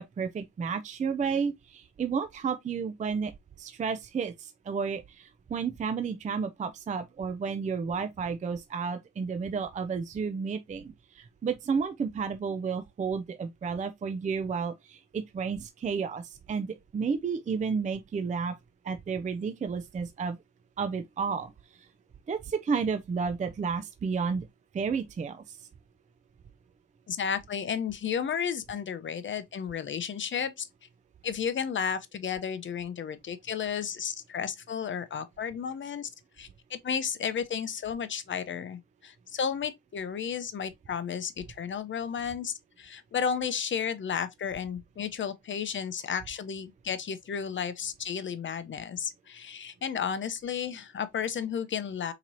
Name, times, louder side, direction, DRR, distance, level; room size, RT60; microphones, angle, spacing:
voice 1, 0.0-3.3 3.6-18.6 18.8-20.4 20.8-21.5 21.8-21.9 22.3-24.5 24.7-25.6, right 5 dB, 25° right, 0.4 m, -32 dB
voice 2, 27.1-30.7 31.2-36.1 36.4-52.1, left 7 dB, 40° left, 0.7 m, -33 dB
4.5 x 2.9 x 2.6 m
cardioid pair, 90°, 30 cm